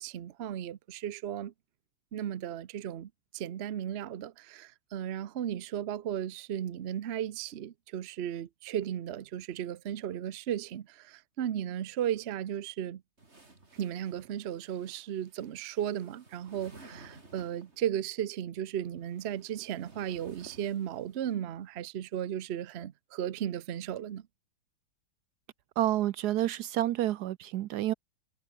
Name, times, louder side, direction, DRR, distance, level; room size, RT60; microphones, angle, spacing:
voice 1, 0.0-1.5 2.1-13.0 13.8-24.2, right 10 dB, 90° right, 0.5 m, -35 dB
sound 1, 13.2-17.9 18.9-21.3, right 2 dB, 30° right, 4.1 m, -55 dB
voice 2, 25.8-27.9, right 13 dB, 75° right, 0.9 m, -29 dB
omnidirectional pair, 2.2 m